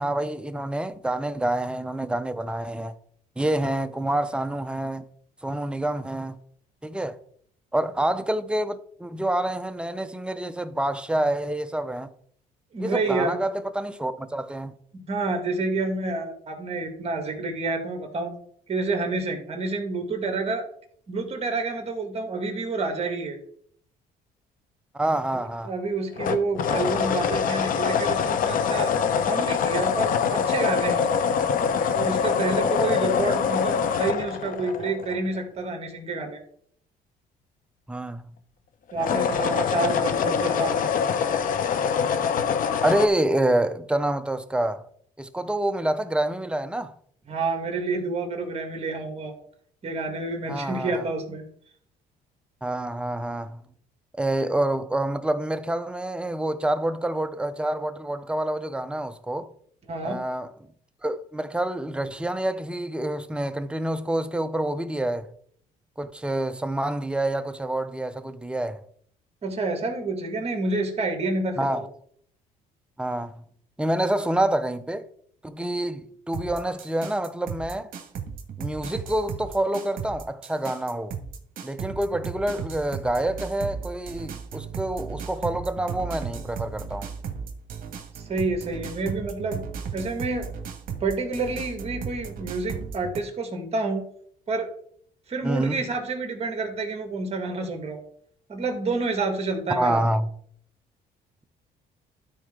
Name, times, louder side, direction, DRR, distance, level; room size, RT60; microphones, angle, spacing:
voice 1, 0.0-2.9 3.4-5.1 5.4-6.4 6.8-7.2 7.7-12.1 12.8-14.7 24.9-25.7 37.9-38.3 42.8-44.8 45.2-46.9 50.5-51.0 52.6-53.6 54.1-59.5 60.0-60.5 61.0-65.3 66.0-68.8 71.6-71.8 73.0-73.4 73.8-75.1 75.4-77.9 78.6-81.2 81.6-87.1 95.4-95.8 99.7-100.3, right 1 dB, 5° right, 0.6 m, -27 dB
voice 2, 12.7-13.4 14.9-18.3 18.7-20.7 21.1-23.4 25.3-25.4 25.6-31.1 31.9-36.4 38.9-40.9 47.3-49.3 49.8-51.4 59.9-60.2 69.4-71.8 88.3-89.7 89.9-90.5 91.0-94.0 94.5-94.7 95.3-98.0 98.5-100.0, right 3 dB, 35° right, 1.9 m, -28 dB
sound 1, 26.2-35.4 38.9-43.1, left 7 dB, 55° left, 0.8 m, -24 dB
sound 2, 76.3-93.2, right 6 dB, 55° right, 1.5 m, -36 dB
12.5 x 4.4 x 3.8 m
cardioid pair, 110°, 17 cm